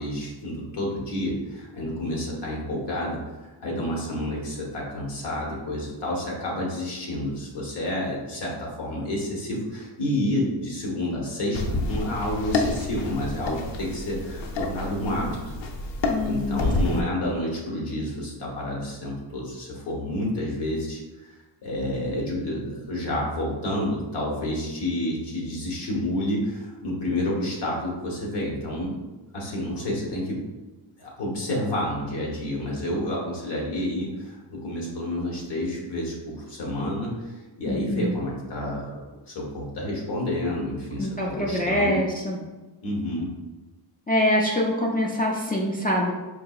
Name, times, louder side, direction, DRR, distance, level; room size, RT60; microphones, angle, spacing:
voice 1, 0.0-3.2 3.6-15.6 16.2-21.4 21.6-29.0 29.3-30.4 31.0-39.0 39.3-42.0 42.8-43.3, left 1 dB, 65° left, -3 dB, 1.2 m, -29 dB
sound 1, 11.5-17.0, left 2 dB, 90° left, 0.6 m, -29 dB
voice 2, 16.1-16.6 16.9-17.1 37.7-38.2 41.0-42.4 44.1-46.1, left 1 dB, 20° left, -3 dB, 0.3 m, -25 dB
4.5 x 2.8 x 2.3 m, 1.2 s
wide cardioid pair, 165°, 44 cm